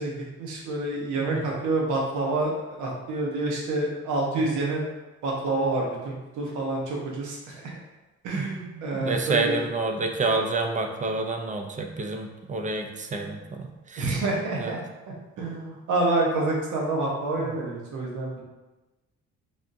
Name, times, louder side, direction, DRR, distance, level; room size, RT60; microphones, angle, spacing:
voice 1, 0.0-4.8 5.2-7.6 8.2-9.6 14.0-14.8 15.4-18.4, right 2 dB, 90° right, -2 dB, 0.8 m, -28 dB
voice 2, 8.3-14.2 14.5-14.7, right 3 dB, 25° right, 3 dB, 0.4 m, -29 dB
3.4 x 2.5 x 2.6 m, 1.1 s
cardioid pair, 90°, 30 cm